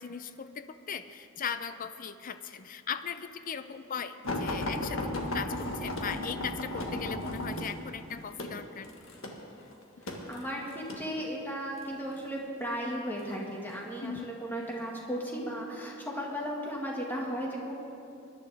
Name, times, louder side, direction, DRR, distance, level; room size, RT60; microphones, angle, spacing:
voice 1, 0.0-8.9 14.0-14.3, left 7 dB, 40° left, 11 dB, 0.5 m, -38 dB
sound 1, 4.2-11.1 11.8-12.3 13.2-13.8 14.6-14.8 15.1-15.2, left 1 dB, 75° left, 1.5 m, -35 dB
voice 2, 10.0-17.7, equal, 10° left, -2 dB, 1.8 m, -35 dB
20.5 x 11.5 x 3.5 m, 2.7 s
head